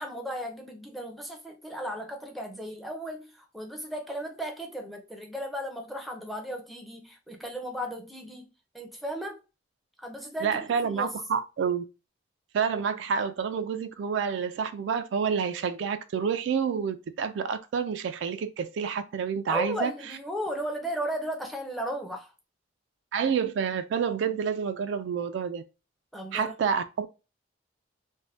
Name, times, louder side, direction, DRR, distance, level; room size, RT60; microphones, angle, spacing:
voice 1, 0.0-8.5 8.7-9.4 10.0-11.1 19.5-22.3 26.1-26.5, equal, ahead, 0.5 m, -35 dB
voice 2, 10.4-11.9 12.5-19.9 23.1-25.6 26.3-27.1, right 6 dB, 70° right, 0.3 m, -28 dB
2.5 x 2.1 x 3.2 m
head